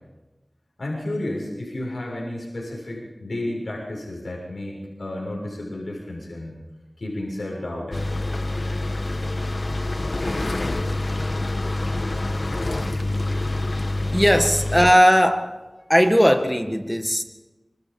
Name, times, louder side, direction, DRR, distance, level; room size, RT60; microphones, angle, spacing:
voice 1, 0.8-6.5 7.0-8.2, left 1 dB, 85° left, 6.9 m, -32 dB
sound 1, 7.9-14.9, left 2 dB, 55° left, 1.3 m, -26 dB
voice 2, 14.1-15.6 15.9-17.2, equal, 5° left, 1.7 m, -18 dB
27.0 x 25.0 x 5.4 m
wide cardioid pair, 55°, 0 cm